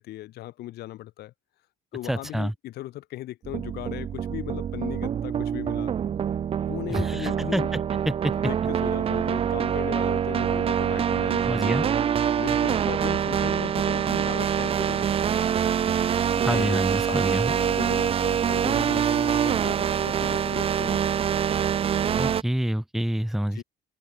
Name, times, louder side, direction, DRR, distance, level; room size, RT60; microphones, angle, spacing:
voice 1, 0.0-1.3 1.9-5.9 6.7-7.8 8.3-12.0 12.4-15.1 16.3-16.8 17.1-21.1 23.5-23.6, left 15 dB, 70° left, 1.5 m, -37 dB
voice 2, 2.0-2.5 6.9-7.8 8.1-8.3 11.4-11.8 16.4-17.5 22.2-23.6, right 1 dB, ahead, 0.8 m, -27 dB
sound 1, 3.4-22.4, right 8 dB, 35° right, 0.5 m, -25 dB
cardioid pair, 110°, 17 cm